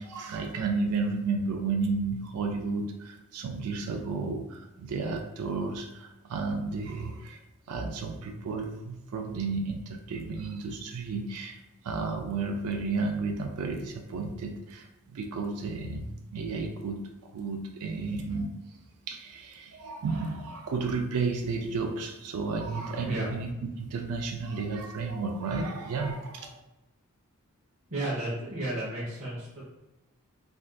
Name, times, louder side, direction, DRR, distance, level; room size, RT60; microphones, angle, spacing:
voice 1, 0.0-7.4 7.7-11.6 11.8-14.9 15.1-18.5 19.1-23.5 23.8-26.6, right 4 dB, 80° right, 4 dB, 0.4 m, -32 dB
voice 2, 23.0-23.3 27.9-29.6, right 1 dB, 65° right, -9 dB, 1.0 m, -33 dB
3.5 x 2.5 x 2.3 m, 0.97 s
head